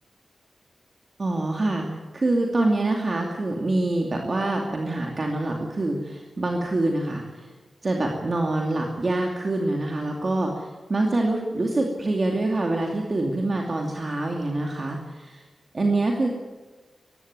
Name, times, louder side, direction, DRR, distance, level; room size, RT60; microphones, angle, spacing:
voice 1, 1.2-1.9 2.1-7.5 7.8-15.4 15.7-16.3, right 2 dB, 35° right, 1 dB, 2.5 m, -25 dB
20.0 x 16.0 x 9.7 m, 1.3 s
wide cardioid pair, 160°, 0 cm